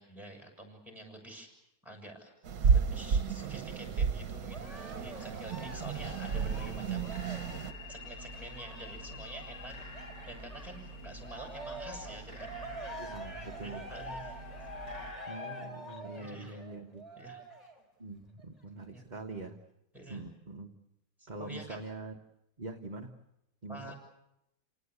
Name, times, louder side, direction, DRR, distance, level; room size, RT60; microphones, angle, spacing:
voice 1, 0.0-1.5 1.8-2.3 2.7-7.4 7.9-9.7 10.3-12.7 13.5-14.4 16.1-16.6 17.2-17.4 18.9-19.1 19.9-20.2 21.2-21.8 23.7-23.9, right 1 dB, ahead, 2 dB, 6.9 m, -48 dB
sound 1, 2.4-7.7, right 6 dB, 60° right, 1.6 m, -31 dB
Cheering, 4.5-10.8 11.2-17.8 18.4-18.5, equal, 20° left, 4.1 m, -46 dB
sound 2, 5.7-15.1, equal, 65° left, 7.9 m, -47 dB
voice 2, 13.0-13.8 15.3-17.1 18.0-19.6 20.1-20.7 21.3-22.1 22.6-23.1 23.6-23.9, right 2 dB, 30° right, 3 dB, 1.3 m, -43 dB
29.0 x 19.0 x 8.3 m, 0.85 s
omnidirectional pair, 1.7 m